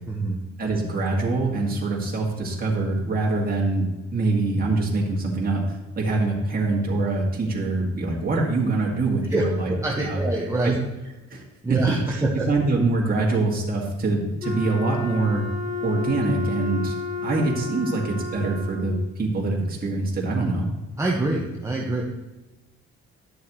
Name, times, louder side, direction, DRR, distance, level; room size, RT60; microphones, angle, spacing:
voice 1, 0.1-0.4 9.3-9.4 9.8-10.7 11.6-12.4 21.0-22.0, right 2 dB, 10° right, -2 dB, 1.3 m, -25 dB
voice 2, 0.6-9.7 10.0-10.2 10.6-10.7 11.3-11.4 11.7-15.4 15.8-16.9 17.2-20.7, right 3 dB, 30° right, -3 dB, 2.0 m, -24 dB
Wind instrument woodwind instrument, 14.4-19.1, left 4 dB, 40° left, 1.6 m, -32 dB
10.5 x 7.1 x 3.1 m, 1.1 s
cardioid pair, 90°, 30 cm